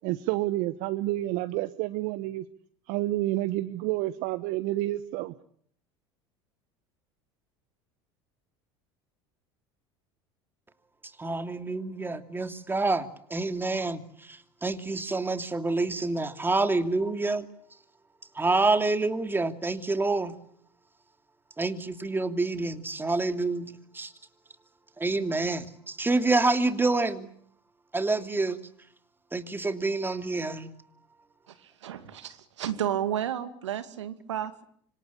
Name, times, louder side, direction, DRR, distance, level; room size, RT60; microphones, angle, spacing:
voice 1, 0.0-2.4 2.9-5.3, right 16 dB, 60° right, 14 dB, 1.2 m, -29 dB
voice 2, 11.2-14.0 14.3-17.5 18.4-20.3 21.6-24.1 25.0-27.3 27.9-28.6 29.3-30.7, right 3 dB, 15° right, 8 dB, 2.8 m, -27 dB
voice 3, 31.5-34.6, right 10 dB, 85° right, 10 dB, 2.3 m, -32 dB
26.0 x 26.0 x 8.5 m, 0.64 s
hypercardioid pair, 75°, 15 cm